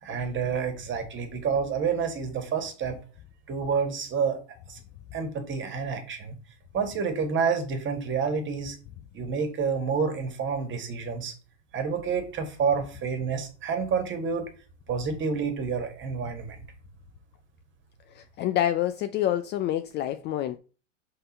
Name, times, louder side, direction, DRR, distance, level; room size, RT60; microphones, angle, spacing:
voice 1, 0.0-3.0 3.5-4.8 5.1-6.3 6.7-8.8 9.1-11.3 11.7-14.5 14.9-16.6, right 5 dB, 30° right, 1.9 m, -29 dB
voice 2, 18.1-20.6, left 12 dB, 30° left, 0.4 m, -27 dB
5.4 x 3.9 x 5.4 m
hypercardioid pair, 110°, 37 cm